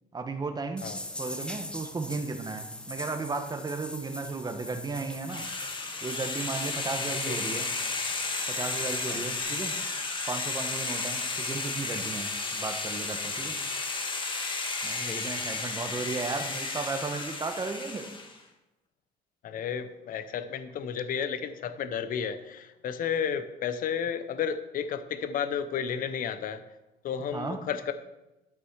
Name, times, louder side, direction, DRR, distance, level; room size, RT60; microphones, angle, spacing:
voice 1, 0.1-0.9 1.2-5.5 6.0-7.7 8.5-9.8 10.3-13.6 14.8-18.2 27.3-27.6, right 4 dB, 25° right, 6 dB, 1.2 m, -35 dB
sound 1, 0.8-9.4, left 1 dB, 5° left, 0.9 m, -42 dB
sound 2, 5.3-18.4, left 3 dB, 30° left, 1.4 m, -33 dB
voice 2, 7.3-7.6 9.1-9.3 15.0-15.4 19.4-26.6 27.0-27.9, left 7 dB, 55° left, 11 dB, 0.8 m, -32 dB
12.0 x 6.3 x 4.7 m, 0.98 s
cardioid pair, 110°, 17 cm